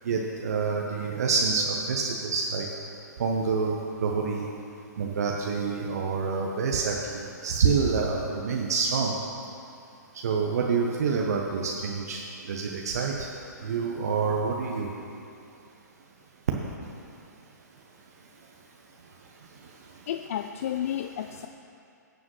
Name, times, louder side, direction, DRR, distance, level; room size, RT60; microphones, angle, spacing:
voice 1, 0.0-2.7 3.2-3.7 4.0-4.5 5.0-9.1 10.2-12.2 12.5-13.3 13.6-14.9, right 5 dB, 55° right, 0 dB, 0.9 m, -27 dB
voice 2, 20.1-21.5, left 10 dB, 50° left, 8 dB, 0.3 m, -31 dB
17.0 x 7.3 x 3.1 m, 2.7 s
figure-of-eight pair, 120°, 10 cm